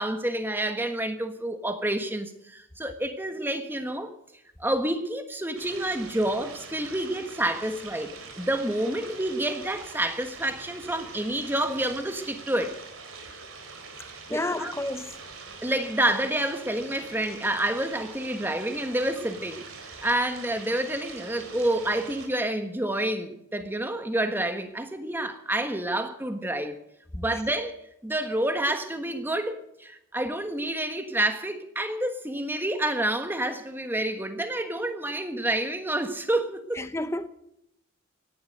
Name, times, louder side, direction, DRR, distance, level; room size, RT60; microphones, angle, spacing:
voice 1, 0.0-4.1 4.6-12.8 14.3-14.7 15.6-19.7 20.0-26.8 27.1-36.9, right 1 dB, 10° right, 1.4 m, -28 dB
sound 1, 5.6-22.3, right 4 dB, 85° right, 4.0 m, -44 dB
voice 2, 14.3-15.1 36.8-37.3, left 1 dB, 15° left, 0.8 m, -30 dB
17.5 x 11.0 x 6.5 m
head